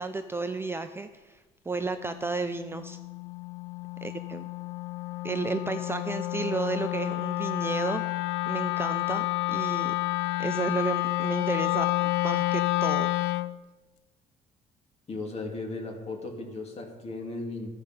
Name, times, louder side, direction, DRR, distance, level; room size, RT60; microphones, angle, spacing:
voice 1, 0.0-3.0 4.0-4.4 5.2-8.0 8.5-9.9 10.4-13.1, right 3 dB, 15° right, 8 dB, 0.4 m, -32 dB
Wind instrument woodwind instrument, 2.0-13.6, left 20 dB, 85° left, 0.4 m, -30 dB
voice 2, 15.1-17.7, left 2 dB, 40° left, 1 dB, 2.4 m, -36 dB
14.0 x 5.1 x 5.6 m, 1.2 s
cardioid pair, 110°, 17 cm